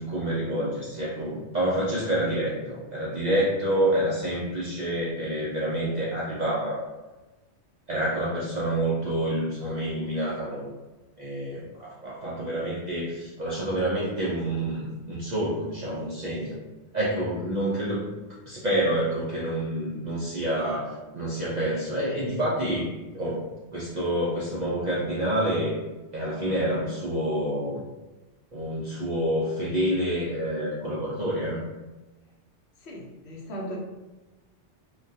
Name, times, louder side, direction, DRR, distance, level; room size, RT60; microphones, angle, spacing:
voice 1, 0.0-6.8 7.9-10.7 11.2-16.6 16.9-18.0 18.5-22.9 23.1-23.4 23.7-25.7 26.1-27.8 28.5-31.7, right 1 dB, 60° right, -6 dB, 0.4 m, -28 dB
voice 2, 32.8-33.8, equal, 70° left, -2 dB, 0.8 m, -37 dB
2.2 x 2.2 x 2.6 m, 1.1 s
omnidirectional pair, 1.2 m